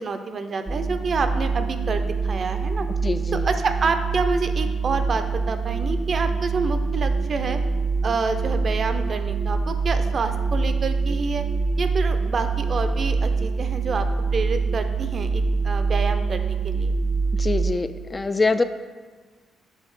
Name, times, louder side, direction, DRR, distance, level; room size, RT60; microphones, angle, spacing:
voice 1, 0.0-2.9 3.3-7.6 8.0-11.4 11.8-14.1 14.3-16.9, right 4 dB, 50° right, 8 dB, 0.6 m, -28 dB
sound 1, 0.7-17.7, right 4 dB, 10° right, 0.6 m, -25 dB
voice 2, 3.0-3.4 17.4-18.6, left 3 dB, 25° left, 10 dB, 0.4 m, -24 dB
6.5 x 4.0 x 4.8 m, 1.4 s
supercardioid pair, 60°, 0 cm